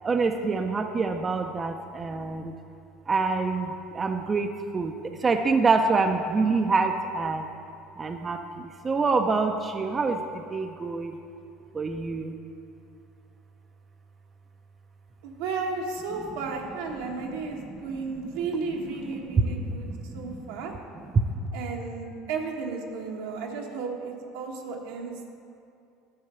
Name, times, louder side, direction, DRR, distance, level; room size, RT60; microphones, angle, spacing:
voice 1, 0.0-2.5 3.1-4.9 5.2-7.5 8.0-10.2 10.5-11.2 11.7-12.3 17.7-18.0 19.3-20.7 21.3-21.4, right 4 dB, 25° right, 5 dB, 0.5 m, -26 dB
voice 2, 15.2-19.9 20.1-20.7 21.5-25.3, right 4 dB, 80° right, 0 dB, 1.3 m, -33 dB
11.0 x 4.6 x 6.9 m, 2.6 s
supercardioid pair, 95°, 0 cm